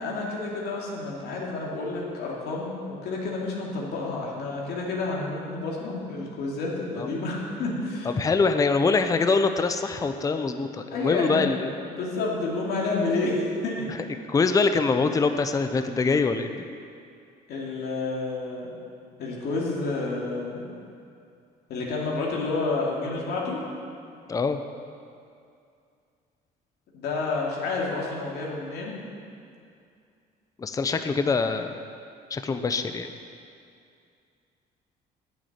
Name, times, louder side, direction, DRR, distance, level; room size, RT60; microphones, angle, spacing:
voice 1, 0.0-8.1 10.9-11.5 11.9-13.9 17.5-18.8 19.2-20.7 21.7-23.6 26.9-29.0, left 3 dB, 75° left, -4 dB, 2.5 m, -29 dB
voice 2, 8.0-11.7 14.3-16.7 24.3-24.6 30.6-31.8 32.3-33.1, left 4 dB, 20° left, 8 dB, 0.6 m, -24 dB
10.5 x 6.4 x 8.7 m, 2.4 s
cardioid pair, 110°, 17 cm